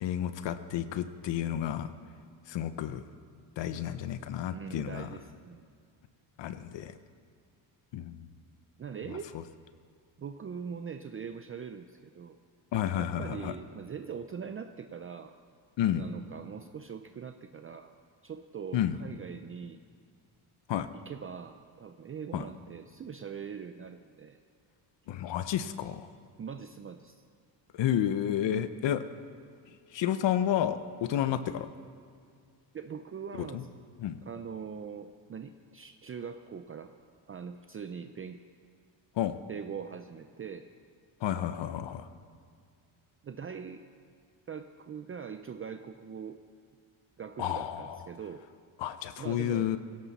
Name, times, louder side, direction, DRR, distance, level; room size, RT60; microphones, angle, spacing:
voice 1, 0.0-1.9 2.5-3.0 3.6-5.1 6.4-6.9 7.9-8.3 12.7-13.5 15.8-16.0 18.7-19.0 20.7-20.9 22.3-22.4 25.1-26.1 27.7-29.0 29.9-31.7 33.4-33.6 34.0-34.2 39.2-39.4 41.2-42.1 47.4-48.0 48.8-49.8, left 10 dB, 65° left, 11 dB, 0.8 m, -31 dB
voice 2, 4.5-5.6 8.8-9.3 10.2-12.4 13.0-15.4 15.9-18.0 18.2-19.8 21.1-24.4 26.4-27.2 32.7-33.7 34.3-36.9 37.3-38.4 39.5-40.7 43.2-43.8 44.5-46.4 47.2-48.4 49.2-49.7, right 6 dB, 30° right, 8 dB, 0.5 m, -42 dB
19.0 x 16.5 x 4.1 m, 2.1 s
cardioid pair, 120°, 46 cm